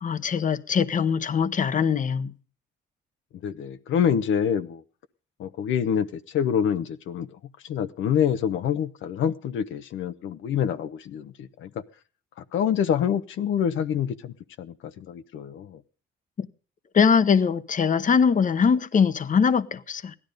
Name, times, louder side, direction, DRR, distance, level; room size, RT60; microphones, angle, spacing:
voice 1, 0.0-2.3 16.4-16.5 16.9-20.1, left 6 dB, 40° left, 1.0 m, -22 dB
voice 2, 3.4-4.8 5.4-7.3 7.6-11.7 12.5-15.8, left 8 dB, 75° left, 0.9 m, -26 dB
16.5 x 12.5 x 5.2 m
cardioid pair, 90°, 20 cm